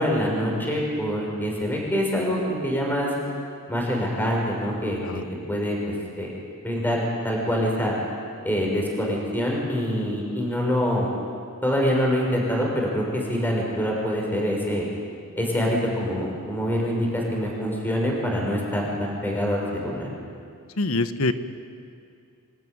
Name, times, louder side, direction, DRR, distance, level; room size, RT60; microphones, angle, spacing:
voice 1, 0.0-3.1 3.7-5.2 5.5-5.8 6.2-6.3 6.6-7.9 8.4-11.1 11.6-14.9 15.4-20.1, equal, 10° left, -2 dB, 5.9 m, -25 dB
voice 2, 20.8-21.3, left 2 dB, 70° left, 11 dB, 1.2 m, -24 dB
27.5 x 19.5 x 9.9 m, 2.4 s
head